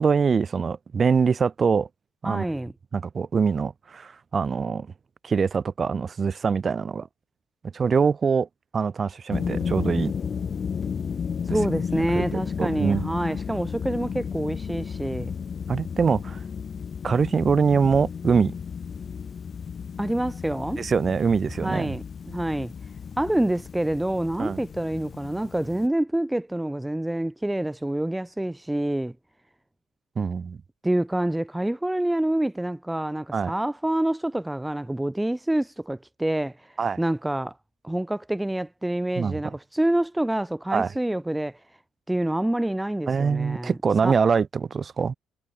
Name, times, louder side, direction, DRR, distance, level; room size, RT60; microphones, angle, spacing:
voice 1, 0.0-1.9 2.2-2.4 2.9-4.9 5.2-7.1 7.7-8.5 8.7-10.1 11.9-13.2 15.7-16.4 17.0-18.5 20.8-21.9 24.4-24.6 30.2-30.6 33.3-33.5 36.8-37.0 39.2-39.5 40.7-40.9 43.1-45.1, right 5 dB, 35° right, 3.0 m, -24 dB
voice 2, 2.2-2.7 11.4-15.3 20.0-20.8 21.6-22.7 23.2-29.1 30.8-37.6 37.8-41.6 42.1-43.7 44.0-44.1, right 1 dB, 5° right, 4.8 m, -27 dB
sound 1, 9.3-25.9, left 6 dB, 45° left, 1.3 m, -33 dB
cardioid pair, 90°, 0 cm